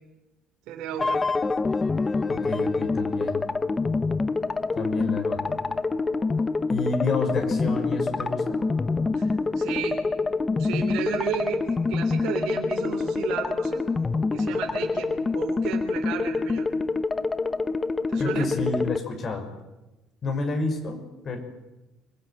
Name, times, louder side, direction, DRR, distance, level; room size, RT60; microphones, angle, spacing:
voice 1, 0.7-1.2 9.1-10.0 10.6-13.8 14.3-16.7 18.1-18.5, right 9 dB, 75° right, 2 dB, 3.7 m, -33 dB
sound 1, 1.0-19.0, left 3 dB, 25° left, 1.0 m, -26 dB
voice 2, 2.3-3.6 4.7-5.6 6.7-8.6 18.2-19.5 20.2-21.0 21.2-21.4, left 3 dB, 50° left, 4 dB, 5.9 m, -29 dB
24.5 x 19.5 x 9.2 m, 1.1 s
supercardioid pair, 85°, 0 cm